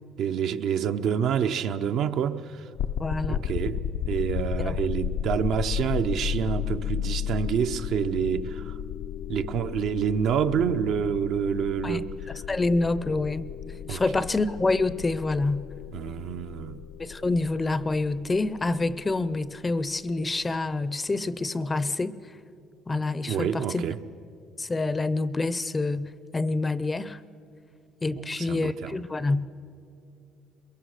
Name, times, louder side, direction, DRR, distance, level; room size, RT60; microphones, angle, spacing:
voice 1, 0.2-2.7 3.3-8.8 9.3-12.1 13.9-14.0 15.9-16.8 23.3-24.0 28.2-29.0, right 8 dB, 65° right, 0.8 m, -28 dB
sound 1, 2.8-19.7, left 9 dB, 80° left, 0.7 m, -34 dB
voice 2, 3.0-3.4 4.7-4.8 11.8-12.0 12.5-13.4 13.9-15.7 17.0-22.1 22.9-23.8 24.6-27.2 28.0-29.5, left 3 dB, 20° left, 0.6 m, -27 dB
23.0 x 22.5 x 6.6 m
cardioid pair, 115°, 0 cm